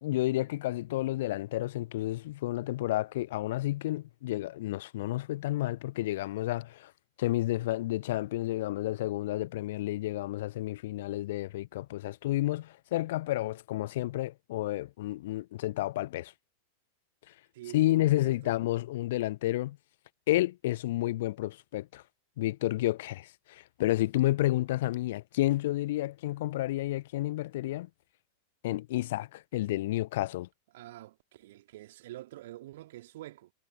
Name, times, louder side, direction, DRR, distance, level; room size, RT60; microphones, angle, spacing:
voice 1, 0.0-6.9 7.2-16.3 17.7-19.8 20.3-22.0 22.4-27.9 28.6-30.5, left 16 dB, 55° left, 0.5 m, -30 dB
voice 2, 17.5-18.5 30.7-33.5, right 15 dB, 55° right, 2.3 m, -47 dB
figure-of-eight pair, 90°, 0 cm